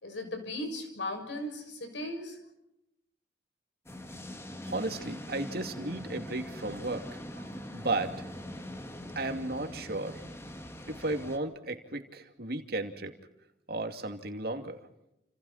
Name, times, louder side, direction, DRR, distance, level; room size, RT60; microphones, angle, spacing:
voice 1, 0.0-2.4, left 1 dB, 80° left, 5 dB, 6.7 m, -37 dB
sound 1, 3.9-11.4, equal, 15° left, 2.1 m, -42 dB
voice 2, 4.6-8.3 9.2-10.2 10.9-13.2 13.7-14.8, right 2 dB, 55° right, 5 dB, 2.6 m, -34 dB
29.5 x 28.5 x 4.3 m, 0.86 s
head